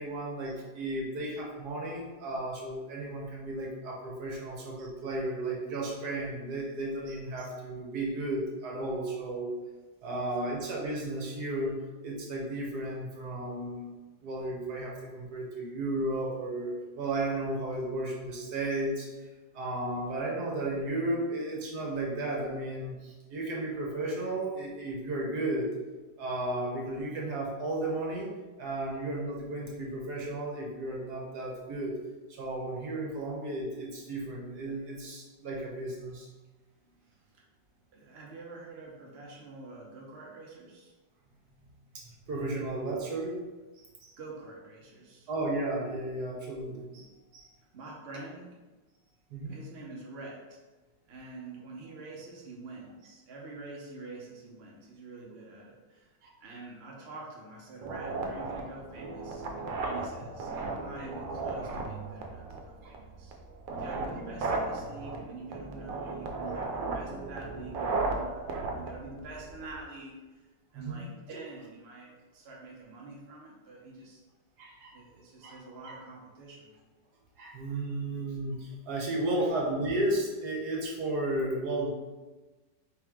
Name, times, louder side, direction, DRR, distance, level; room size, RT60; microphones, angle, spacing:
voice 1, 0.0-9.5 10.0-13.9 14.2-19.1 19.5-25.7 26.2-28.3 28.6-31.9 32.3-36.3 41.9-43.4 44.0-44.1 45.3-47.5 49.3-49.6 56.2-56.3 59.8-60.0 62.8-62.9 70.7-71.1 74.6-75.0 75.4-75.6 75.8-75.9 77.4-81.9, right 1 dB, 65° right, -2 dB, 1.3 m, -34 dB
voice 2, 37.9-40.9 44.2-45.3 47.7-48.6 49.5-50.6 51.1-56.1 56.4-59.4 59.8-63.4 63.7-70.5 70.7-74.2 74.9-76.7, right 3 dB, 50° right, -3 dB, 0.8 m, -46 dB
sound 1, 57.8-69.8, right 3 dB, 85° right, 1.4 m, -35 dB
4.3 x 3.2 x 3.5 m, 1.2 s
omnidirectional pair, 2.0 m